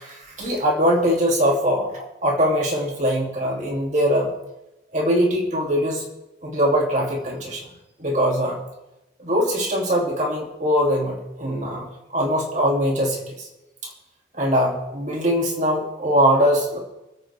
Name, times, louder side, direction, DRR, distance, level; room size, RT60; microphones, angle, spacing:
voice 1, 0.0-4.3 4.9-6.0 6.4-7.6 8.0-8.6 9.2-11.9 12.1-13.5 14.3-16.8, equal, 40° right, -1 dB, 2.7 m, -22 dB
25.5 x 8.5 x 3.4 m, 0.95 s
head